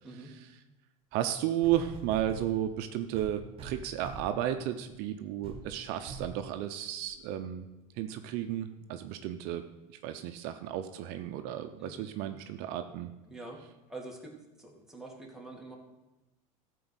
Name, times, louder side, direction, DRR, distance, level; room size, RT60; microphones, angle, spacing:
voice 1, 0.1-0.6 1.1-7.7 8.0-13.1, right 11 dB, 65° right, 8 dB, 0.7 m, -33 dB
sound 1, 1.1-1.2 1.6-2.5 3.1-4.4 4.9-5.1 5.4-5.7 6.1-6.4 7.1-7.2, right 3 dB, 35° right, 2.1 m, -44 dB
voice 2, 11.8-12.1 13.3-13.6 13.9-14.3 14.6-15.8, right 2 dB, 5° right, -1 dB, 2.4 m, -45 dB
13.0 x 4.6 x 8.0 m, 1.0 s
supercardioid pair, 110°, 18 cm